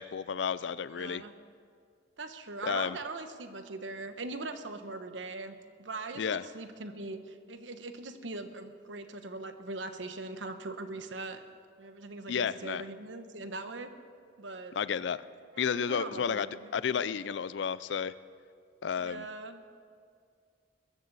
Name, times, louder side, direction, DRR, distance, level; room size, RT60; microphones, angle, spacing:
voice 1, 0.0-1.2 2.6-3.0 6.2-6.4 12.3-12.8 14.8-15.2 15.6-16.5 16.7-18.1 18.8-19.3, left 7 dB, 70° left, 17 dB, 0.4 m, -32 dB
voice 2, 0.9-1.3 2.2-11.4 11.8-13.9 14.4-14.8 15.5-16.7 19.0-19.6, right 3 dB, 90° right, 8 dB, 1.1 m, -41 dB
21.5 x 13.5 x 4.1 m, 2.2 s
head